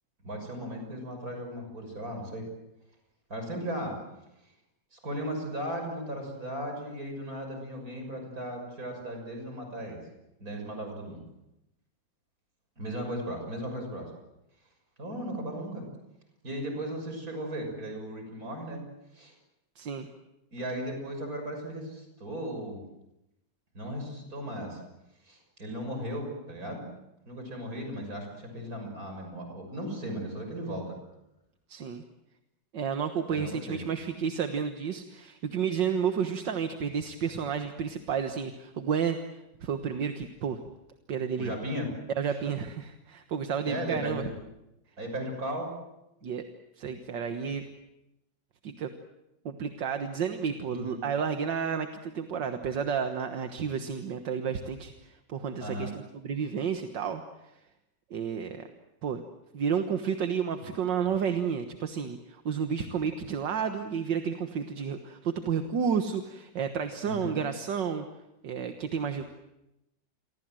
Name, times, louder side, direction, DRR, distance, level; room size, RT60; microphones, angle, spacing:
voice 1, 0.2-2.5 3.3-4.0 4.9-10.1 10.4-11.2 12.8-14.1 15.0-15.8 16.4-18.8 19.1-19.3 20.5-22.8 23.7-24.8 25.2-26.9 27.3-30.9 33.3-33.8 41.4-41.9 43.7-44.3 45.0-45.7 50.7-51.0 55.6-55.9 60.6-60.7 61.1-61.2 67.0-67.4, equal, 50° right, 3 dB, 6.9 m, -36 dB
voice 2, 19.8-20.1 31.7-32.0 32.7-39.2 39.6-40.6 41.1-41.5 42.2-44.2 46.2-46.4 46.8-47.7 48.6-48.9 49.5-57.2 58.1-58.7 59.0-59.2 59.5-68.1 68.4-69.3, right 7 dB, 80° right, 7 dB, 2.0 m, -31 dB
29.0 x 23.5 x 7.7 m, 0.90 s
omnidirectional pair, 1.9 m